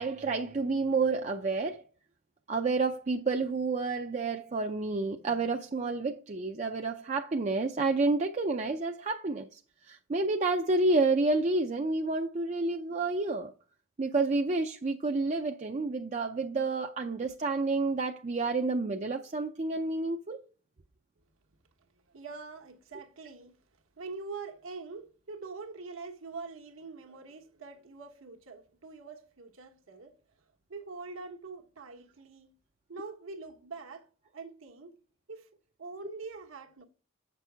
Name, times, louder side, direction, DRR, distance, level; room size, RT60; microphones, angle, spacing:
voice 1, 0.0-1.8 2.5-13.5 14.0-20.4, right 3 dB, 35° right, 0.5 m, -29 dB
voice 2, 21.9-23.6 24.0-30.1 30.7-32.5 32.9-34.1 34.3-34.9 35.3-35.5 35.8-36.8, right 4 dB, 75° right, 1.2 m, -44 dB
8.0 x 6.0 x 3.4 m
head